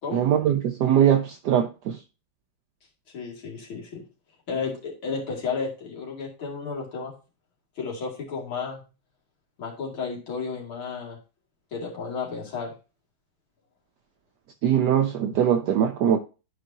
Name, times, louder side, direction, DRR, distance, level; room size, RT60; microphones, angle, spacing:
voice 1, 0.1-2.0 14.6-16.2, right 9 dB, 75° right, 0.9 m, -21 dB
voice 2, 3.1-4.0 4.5-7.1 7.8-8.8 9.6-11.2 11.7-12.7, left 5 dB, 70° left, 3.1 m, -32 dB
11.5 x 5.0 x 2.8 m
omnidirectional pair, 2.4 m